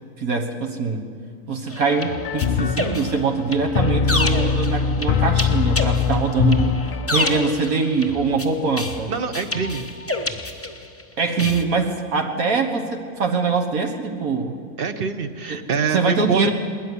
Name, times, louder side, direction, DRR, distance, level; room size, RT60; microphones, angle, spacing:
voice 1, 0.2-1.0 1.5-6.8 7.1-9.1 11.2-14.6 15.5-15.6 15.9-16.5, right 4 dB, 70° right, 4 dB, 1.7 m, -23 dB
sound 1, 1.7-11.0 11.4-11.6, left 2 dB, 10° left, 0.9 m, -29 dB
sound 2, 1.8-7.5, left 6 dB, 50° left, 0.6 m, -22 dB
voice 2, 9.1-9.9 14.8-16.5, right 5 dB, 40° right, 9 dB, 1.0 m, -24 dB
20.5 x 13.5 x 9.8 m, 2.2 s
omnidirectional pair, 1.6 m